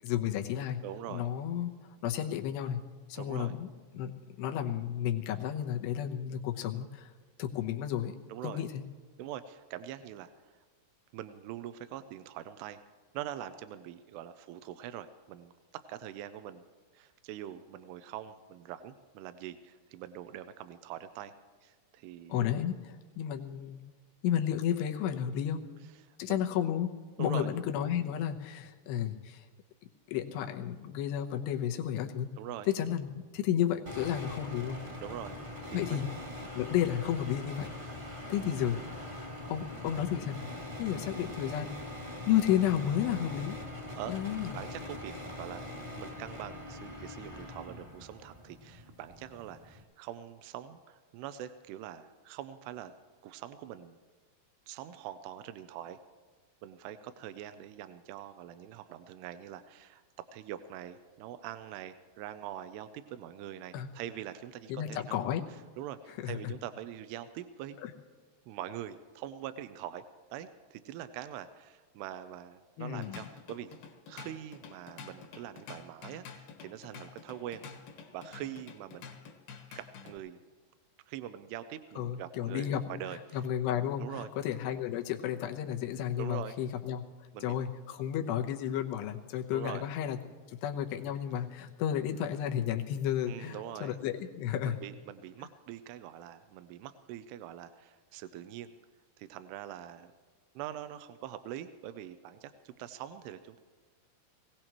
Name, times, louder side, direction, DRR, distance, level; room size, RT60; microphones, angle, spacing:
voice 1, 0.0-0.8 1.1-1.7 2.0-2.8 3.1-3.7 3.9-4.1 4.4-7.1 7.4-8.1 8.4-8.9 22.3-23.8 24.2-25.6 26.2-26.9 27.2-29.4 30.1-32.3 32.7-34.8 35.7-36.1 36.6-37.7 38.3-38.8 39.5-40.5 40.8-41.8 42.3-43.6 44.1-44.6 63.7-63.9 64.7-65.4 66.2-66.4 67.8-67.9 72.8-73.2 82.0-82.8 83.3-87.0 87.4-90.2 90.5-94.8, left 10 dB, 85° left, 3 dB, 3.0 m, -32 dB
voice 2, 0.8-1.3 3.2-3.5 8.3-8.6 9.2-10.3 11.1-12.8 13.1-16.6 16.9-21.3 21.6-22.5 26.1-26.4 27.2-27.5 32.4-32.7 35.0-35.4 35.7-36.0 43.9-44.1 44.5-45.7 46.0-52.9 53.2-54.0 54.7-56.0 56.6-60.0 60.3-65.2 65.5-67.8 68.5-70.0 70.3-73.7 74.1-77.6 78.1-79.1 79.7-80.4 81.1-83.4 84.0-84.3 86.2-86.6 87.3-87.6 89.5-89.8 93.3-94.0 94.7-98.7 99.2-100.1 100.6-103.6, right 11 dB, 85° right, 11 dB, 2.7 m, -43 dB
sound 1, 33.9-49.8, left 1 dB, 20° right, 1.3 m, -43 dB
Drum kit / Drum, 72.8-80.2, left 5 dB, 70° left, 2.9 m, -49 dB
22.0 x 17.0 x 3.0 m, 1.5 s
omnidirectional pair, 4.8 m